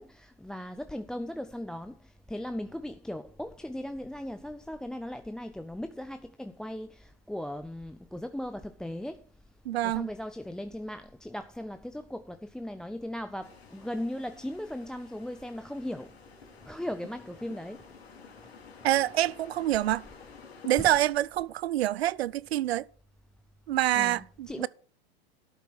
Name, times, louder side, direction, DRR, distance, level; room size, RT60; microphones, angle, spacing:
voice 1, 0.0-9.2 9.8-16.1 16.6-17.8 23.9-24.7, left 1 dB, ahead, 0.5 m, -38 dB
voice 2, 9.7-10.1 18.8-20.1 20.6-22.9 23.7-24.7, right 13 dB, 85° right, 0.5 m, -26 dB
Beachbreak cobblestones, 13.4-21.1, left 5 dB, 90° left, 3.1 m, -51 dB
12.5 x 6.8 x 6.2 m
hypercardioid pair, 105°, 30 cm